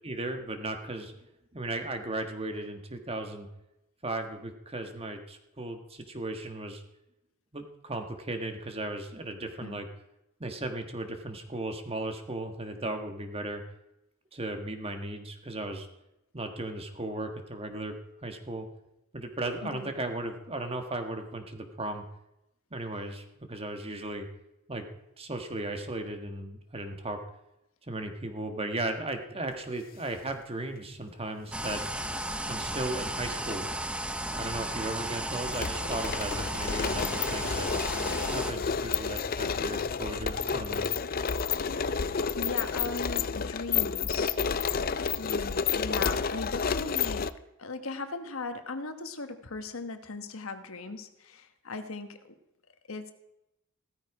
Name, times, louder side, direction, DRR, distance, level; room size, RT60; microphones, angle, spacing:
voice 1, 0.0-1.2 1.5-3.5 4.0-6.8 7.5-9.9 10.4-13.6 14.3-15.9 16.3-18.0 18.2-18.7 19.1-22.0 22.7-24.3 24.7-24.8 25.2-27.2 27.9-31.8 32.5-33.7 34.3-37.7 38.3-40.8, right 2 dB, 30° right, 6 dB, 1.6 m, -36 dB
sound 1, 31.5-31.7 32.8-33.5 33.8-33.9 34.3-47.3, left 6 dB, 45° left, 0.5 m, -30 dB
sound 2, 31.5-38.5, right 1 dB, 5° right, 0.7 m, -34 dB
voice 2, 36.8-37.2 41.5-42.1 42.3-44.4 45.2-47.3 47.6-52.2 52.9-53.1, left 3 dB, 75° left, 8 dB, 1.3 m, -38 dB
15.5 x 13.5 x 4.9 m, 0.89 s
head